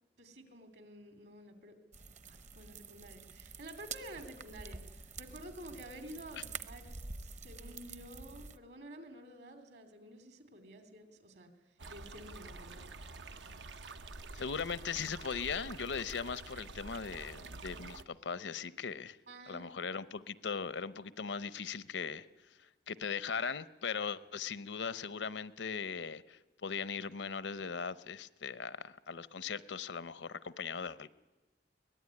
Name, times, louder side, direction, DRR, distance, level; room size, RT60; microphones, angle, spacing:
voice 1, 0.2-1.8 2.2-11.5 11.9-12.9 19.3-19.7, right 1 dB, 65° right, 8 dB, 3.1 m, -51 dB
sound 1, 1.9-8.6, right 4 dB, 40° right, 0.9 m, -48 dB
sound 2, 11.8-18.0, right 3 dB, 85° right, 0.9 m, -48 dB
voice 2, 14.3-19.2 19.5-22.3 22.6-31.1, left 6 dB, 90° left, 16 dB, 0.8 m, -39 dB
23.0 x 19.0 x 9.7 m, 1.2 s
head